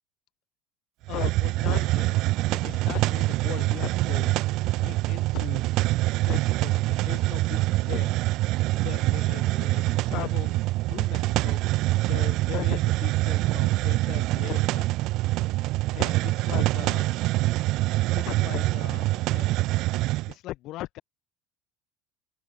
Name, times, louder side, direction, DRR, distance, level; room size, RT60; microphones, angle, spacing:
voice 1, 1.1-4.3 4.8-5.6 6.2-8.2 8.8-10.6 10.9-11.6 12.1-14.9 15.9-17.1 18.1-19.5 20.3-21.0, left 16 dB, 50° left, 1.5 m, -38 dB
Hiss, 1.1-20.3, right 18 dB, 55° right, 0.5 m, -25 dB
open air
cardioid pair, 150°, 0 cm